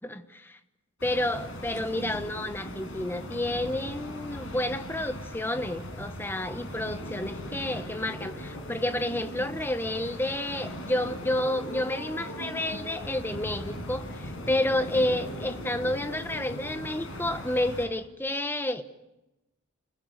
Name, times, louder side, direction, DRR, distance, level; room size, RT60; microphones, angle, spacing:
voice 1, 0.0-0.6 1.0-18.8, left 1 dB, 10° left, 9 dB, 1.2 m, -30 dB
sound 1, 1.0-17.9, left 1 dB, 65° left, 6.3 m, -39 dB
29.0 x 16.0 x 9.6 m, 0.97 s
head